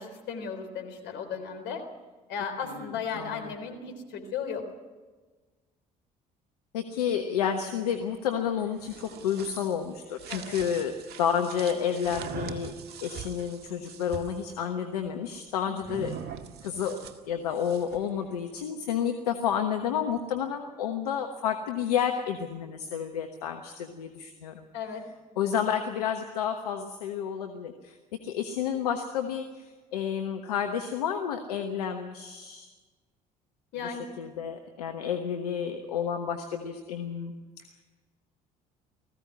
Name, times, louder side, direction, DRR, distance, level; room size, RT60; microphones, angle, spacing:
voice 1, 0.0-1.8 2.3-4.7 10.3-10.6 15.7-16.0 24.7-25.0 33.7-34.1, left 6 dB, 65° left, 5 dB, 3.7 m, -36 dB
voice 2, 2.7-3.5 6.7-10.9 11.2-12.7 13.0-16.1 16.6-17.0 17.3-24.6 25.4-28.0 28.2-32.7 33.8-37.3, left 8 dB, 85° left, 6 dB, 1.2 m, -30 dB
sound 1, 8.6-14.4 15.8-18.1, right 7 dB, 55° right, 1.9 m, -42 dB
19.5 x 15.5 x 9.5 m, 1.3 s
hypercardioid pair, 60°, 19 cm